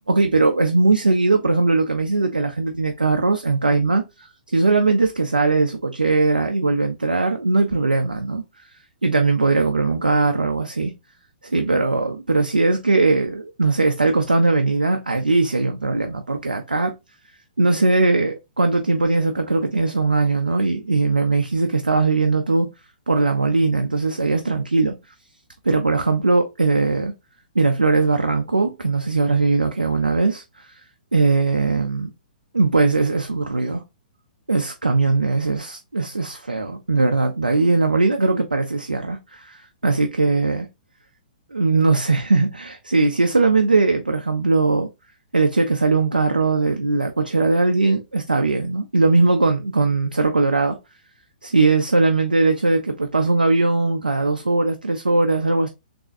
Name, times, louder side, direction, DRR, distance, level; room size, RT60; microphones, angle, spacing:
voice 1, 0.1-8.4 9.0-10.9 11.4-16.9 17.6-22.7 23.1-24.9 25.6-27.1 27.6-30.7 31.1-32.1 32.5-33.8 34.5-40.7 41.5-44.9 45.3-50.8 51.4-55.7, right 3 dB, 90° right, 0.5 m, -20 dB
3.7 x 3.4 x 2.5 m
figure-of-eight pair, 120°, 5 cm